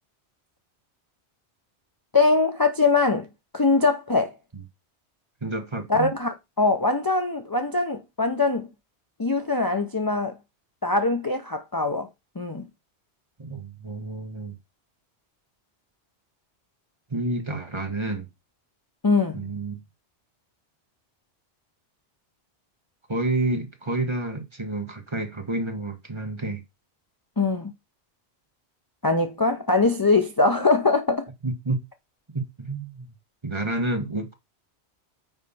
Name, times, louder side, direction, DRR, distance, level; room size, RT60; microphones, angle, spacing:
voice 1, 2.1-3.3 3.5-4.3 5.9-8.7 9.2-10.4 10.8-12.1 12.4-12.7 19.0-19.4 27.4-27.7 29.0-31.3, left 3 dB, 25° left, 0.6 m, -22 dB
voice 2, 5.4-6.1 13.4-14.5 17.1-18.3 19.3-19.8 23.1-26.6 31.4-31.8 32.3-33.1 33.4-34.3, right 2 dB, 25° right, 1.3 m, -29 dB
9.1 x 3.3 x 5.5 m
omnidirectional pair, 1.2 m